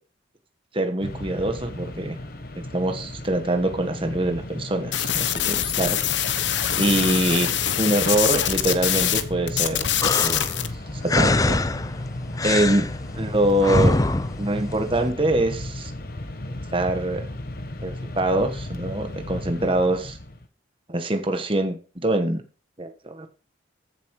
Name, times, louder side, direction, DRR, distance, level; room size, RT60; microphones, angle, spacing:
voice 1, 0.7-2.2 2.7-6.0 6.8-9.9 10.2-10.5 11.1-11.6 12.4-12.9 13.1-14.0 14.4-15.9 16.7-17.2 17.8-20.2 20.9-22.4 22.8-23.3, right 1 dB, 30° right, 6 dB, 1.4 m, -24 dB
Mechanisms, 1.0-20.5, left 1 dB, 50° left, 1.3 m, -35 dB
sound 1, 4.9-9.2 9.5-10.7, left 10 dB, 70° left, 1.0 m, -24 dB
sound 2, 10.0-15.1, left 2 dB, 20° left, 0.5 m, -25 dB
15.0 x 7.2 x 4.8 m, 0.38 s
head